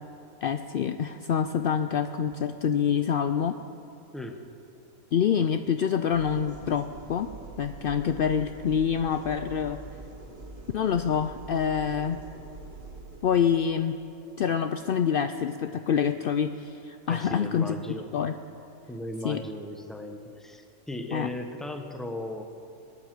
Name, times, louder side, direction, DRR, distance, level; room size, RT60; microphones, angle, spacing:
voice 1, 0.4-3.5 5.1-7.3 7.6-9.8 10.7-12.2 13.2-14.0 14.4-17.8 18.1-18.3 19.2-19.4 21.1-21.3, left 8 dB, 75° left, 9 dB, 0.5 m, -26 dB
sound 1, 6.1-13.2, right 2 dB, 45° right, 1.9 m, -44 dB
voice 2, 17.1-18.1 18.9-22.4, left 1 dB, ahead, 5 dB, 1.0 m, -37 dB
19.5 x 9.6 x 7.6 m, 2.8 s
omnidirectional pair, 1.5 m